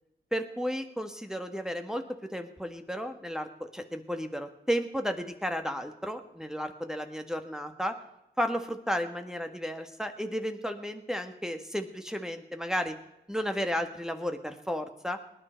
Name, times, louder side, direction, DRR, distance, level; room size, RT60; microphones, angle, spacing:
voice 1, 0.3-2.0 2.3-7.9 8.4-12.9 13.3-15.2, equal, 5° right, 5 dB, 1.5 m, -33 dB
19.0 x 9.9 x 4.5 m, 0.88 s
cardioid pair, 45°, 19 cm